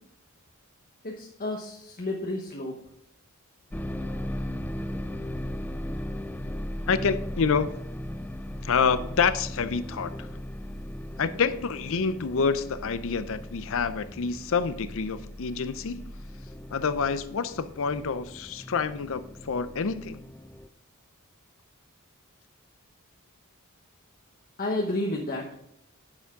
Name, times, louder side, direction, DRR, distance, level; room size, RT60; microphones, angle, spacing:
voice 1, 1.0-2.8 24.6-25.4, left 1 dB, 40° left, 1.0 m, -31 dB
sound 1, 3.7-20.7, left 1 dB, 10° left, 0.4 m, -37 dB
voice 2, 6.9-7.7 8.6-10.3 11.2-16.0 16.7-20.2, left 5 dB, 65° left, 0.6 m, -27 dB
9.6 x 7.0 x 3.6 m
head